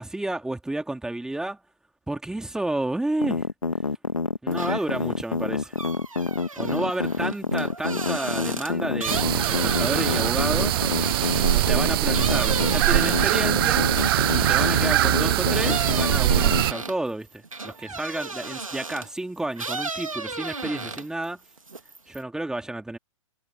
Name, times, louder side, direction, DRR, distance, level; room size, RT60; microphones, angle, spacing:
voice 1, 0.0-1.6 2.1-3.4 4.4-5.8 6.5-10.8 11.5-13.9 14.3-21.4 22.1-23.0, right 2 dB, 5° right, 2.8 m, -31 dB
sound 1, 3.2-16.6, left 4 dB, 80° left, 1.8 m, -27 dB
sound 2, 4.5-5.0 5.4-15.1 15.5-19.2 19.5-21.2 21.6-22.2, right 3 dB, 80° right, 1.9 m, -34 dB
sound 3, 9.1-16.7, right 15 dB, 45° right, 0.6 m, -22 dB
figure-of-eight pair, 115°, 17 cm